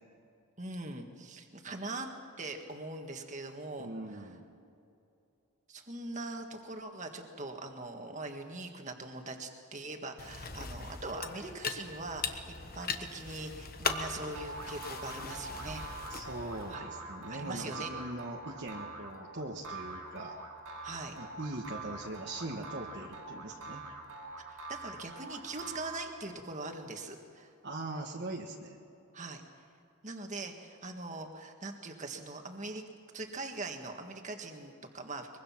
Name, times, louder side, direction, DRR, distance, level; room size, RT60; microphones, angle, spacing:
voice 1, 0.6-2.1 2.4-3.9 5.7-15.8 16.7-16.9 17.3-17.9 20.8-21.2 24.5-27.5 29.1-29.4 30.0-32.8 33.1-35.3, right 2 dB, 35° right, 4 dB, 1.8 m, -42 dB
voice 2, 3.8-4.5 16.1-20.3 21.2-23.8 27.6-28.8, right 2 dB, 50° right, 0 dB, 1.5 m, -41 dB
sound 1, 10.2-16.7, left 5 dB, 40° left, 1.2 m, -39 dB
sound 2, 13.8-26.4, right 2 dB, 90° right, 4.3 m, -44 dB
23.5 x 23.0 x 6.0 m, 2.6 s
head